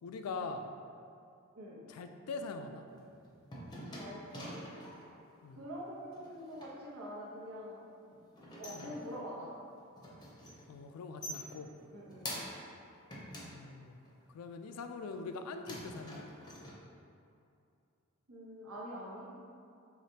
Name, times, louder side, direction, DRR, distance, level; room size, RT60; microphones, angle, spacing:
voice 1, 0.0-0.7 1.9-2.8 5.4-5.6 8.7-9.0 10.7-11.7 13.4-14.0 14.3-16.3, left 4 dB, 85° left, 7 dB, 0.3 m, -43 dB
sound 1, 2.9-5.1 6.1-6.7 8.1-9.4 9.8-10.7 11.0-12.8 13.1-14.2 14.8-15.4 15.7-16.7, left 1 dB, 20° left, 0.6 m, -46 dB
voice 2, 3.8-4.6 5.6-7.9 8.6-9.5 11.9-12.4 18.3-19.3, equal, 80° right, -5 dB, 1.0 m, -45 dB
5.0 x 3.2 x 2.8 m, 2.5 s
head